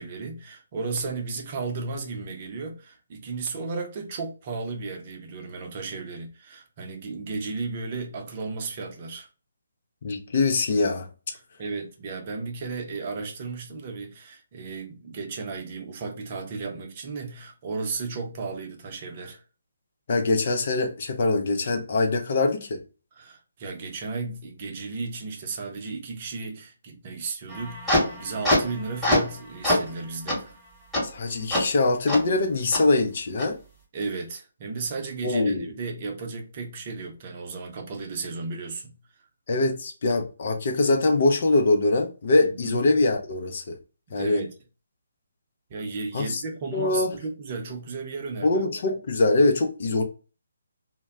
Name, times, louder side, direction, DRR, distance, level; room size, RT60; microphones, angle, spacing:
voice 1, 0.0-9.3 11.3-19.4 23.1-30.6 33.9-39.0 42.4-42.8 44.1-44.5 45.7-48.5, right 4 dB, 35° right, 0.6 m, -34 dB
voice 2, 10.0-11.1 20.1-22.8 31.0-33.6 35.2-35.7 39.5-43.8 44.1-44.4 46.1-46.4 46.7-47.1 48.4-50.0, left 2 dB, 50° left, 0.5 m, -23 dB
sound 1, 27.5-29.4 29.6-29.9 30.3-30.4 30.9-31.0 31.5-31.6 32.1-32.2 32.7-32.8 33.4-33.5, left 1 dB, ahead, 1.1 m, -24 dB
2.1 x 2.1 x 3.5 m
figure-of-eight pair, 145°, 0 cm